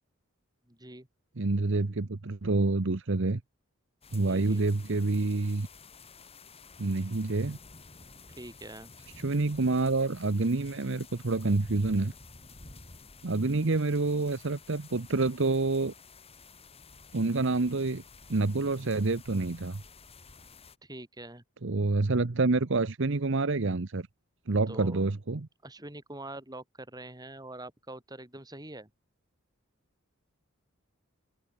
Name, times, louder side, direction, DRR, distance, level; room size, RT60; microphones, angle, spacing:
voice 1, 0.7-1.1 4.2-4.6 8.4-8.9 20.8-21.4 24.7-25.0 25.6-28.9, right 1 dB, 20° right, 5.7 m, -44 dB
voice 2, 1.4-3.4 4.1-5.7 6.8-7.6 9.2-12.1 13.2-15.9 17.1-18.0 18.3-19.8 21.6-24.1 24.5-25.5, right 3 dB, 60° right, 0.9 m, -27 dB
sound 1, 4.0-20.8, left 4 dB, 30° left, 4.7 m, -52 dB
head